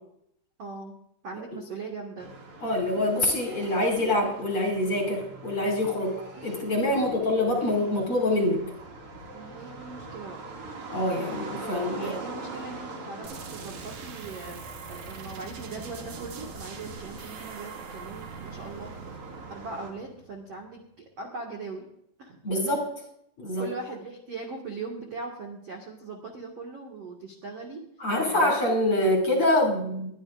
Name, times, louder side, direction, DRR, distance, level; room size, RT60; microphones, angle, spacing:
voice 1, 0.6-1.0 1.2-2.3 6.9-7.1 9.3-10.4 12.0-14.6 14.9-18.9 19.5-21.9 22.2-22.4 23.6-27.8 28.2-28.5, right 3 dB, 70° right, 0 dB, 1.5 m, -40 dB
sound 1, 2.2-19.9, right 3 dB, 45° right, 2.0 m, -43 dB
voice 2, 2.6-6.2 6.4-8.6 10.9-12.2 22.4-22.9 23.4-23.7 28.0-30.1, left 1 dB, 35° left, 0 dB, 2.6 m, -25 dB
sound 2, 13.2-20.8, right 5 dB, 85° right, 1.7 m, -43 dB
22.0 x 12.0 x 2.5 m, 0.74 s
omnidirectional pair, 5.8 m